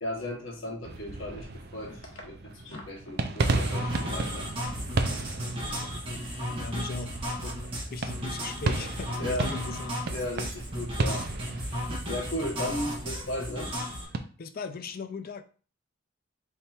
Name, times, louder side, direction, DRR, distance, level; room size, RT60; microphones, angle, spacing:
voice 1, 0.0-4.5 7.4-7.6 9.2-9.6 10.1-11.3 11.6-13.7, left 1 dB, 80° left, 0 dB, 1.3 m, -36 dB
sound 1, 0.8-14.2, right 3 dB, 55° right, 0.5 m, -34 dB
sound 2, 3.4-14.1, equal, 30° right, 1.3 m, -35 dB
voice 2, 5.5-6.0 6.6-7.2 7.9-10.0 14.4-15.4, left 3 dB, 50° left, 9 dB, 0.4 m, -38 dB
3.6 x 3.0 x 4.3 m, 0.39 s
head